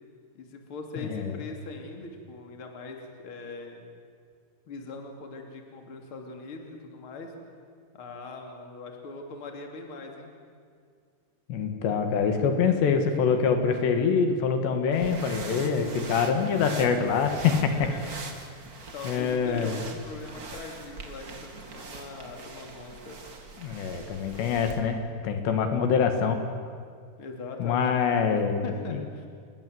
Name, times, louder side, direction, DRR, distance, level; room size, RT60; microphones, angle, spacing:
voice 1, 0.3-3.9 4.7-7.3 7.9-10.3 17.7-18.0 18.9-23.2 27.2-27.9 28.6-29.3, left 3 dB, 35° left, 3 dB, 3.2 m, -41 dB
voice 2, 1.0-1.4 11.5-17.9 19.0-19.8 23.6-26.4 27.6-29.0, left 6 dB, 80° left, 6 dB, 4.1 m, -25 dB
sound 1, 14.9-24.8, right 3 dB, 55° right, 1.0 m, -42 dB
28.0 x 21.0 x 7.9 m, 2.1 s
omnidirectional pair, 4.9 m